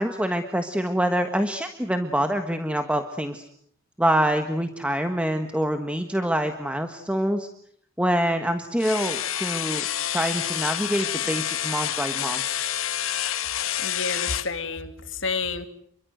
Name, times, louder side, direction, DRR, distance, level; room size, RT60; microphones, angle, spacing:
voice 1, 0.0-3.4 4.0-7.5 8.0-9.8 10.1-12.4, equal, 5° right, 7 dB, 1.5 m, -25 dB
sound 1, 8.8-14.5, left 11 dB, 80° left, 1.6 m, -28 dB
voice 2, 13.8-15.7, left 4 dB, 65° left, 9 dB, 2.8 m, -30 dB
29.5 x 23.5 x 7.9 m, 0.65 s
head